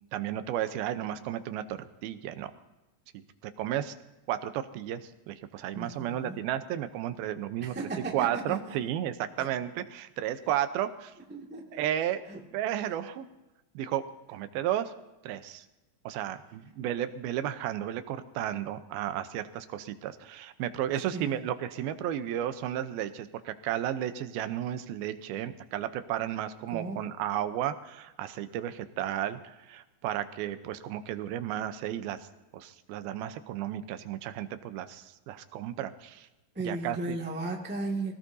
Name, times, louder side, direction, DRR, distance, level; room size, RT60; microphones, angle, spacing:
voice 1, 0.1-2.5 3.1-3.9 4.3-7.8 8.1-11.1 11.7-12.2 12.5-13.3 13.8-14.0 14.3-14.9 15.2-15.7 16.1-32.3 32.5-36.3 36.6-37.2, right 11 dB, 85° right, 10 dB, 2.7 m, -33 dB
voice 2, 5.7-6.4 7.6-8.8 9.4-9.5 11.3-11.8 12.3-12.4 21.1-21.4 26.7-27.0 36.5-38.1, right 2 dB, 10° right, 0 dB, 0.5 m, -36 dB
25.0 x 17.0 x 2.7 m, 1.1 s
omnidirectional pair, 4.3 m